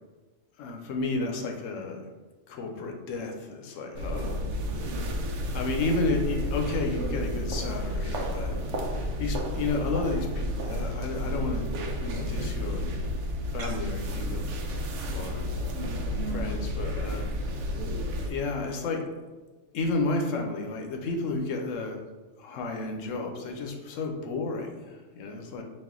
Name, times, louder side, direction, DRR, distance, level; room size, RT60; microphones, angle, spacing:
voice 1, 0.6-2.0 2.5-4.4 4.8-8.6 8.9-11.7 12.0-13.1 13.5-14.8 15.1-15.5 16.3-17.3 18.3-19.0 19.7-22.0 22.4-25.6, left 3 dB, 80° left, 3 dB, 1.0 m, -32 dB
sound 1, 3.9-18.3, equal, 70° right, 0.8 m, -31 dB
4.2 x 2.5 x 3.6 m, 1.3 s
omnidirectional pair, 1.3 m